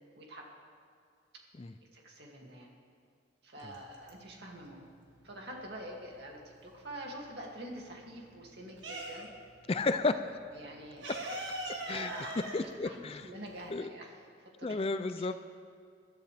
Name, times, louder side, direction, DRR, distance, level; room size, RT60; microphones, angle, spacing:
voice 1, 0.1-0.4 1.9-2.7 3.4-4.9 5.2-9.3 10.5-11.1 11.7-14.2 14.6-14.8 15.2-15.3, right 1 dB, 60° right, -1 dB, 2.5 m, -46 dB
sound 1, 3.6-4.5 4.9-6.8 7.2-9.6 9.8-10.0 10.2-13.8, right 2 dB, 80° right, 2.1 m, -41 dB
voice 2, 9.7-10.2 11.7-12.1 12.5-13.2 13.7-13.9 14.6-15.3, left 3 dB, 30° left, 10 dB, 0.4 m, -32 dB
21.5 x 13.0 x 3.4 m, 2.2 s
head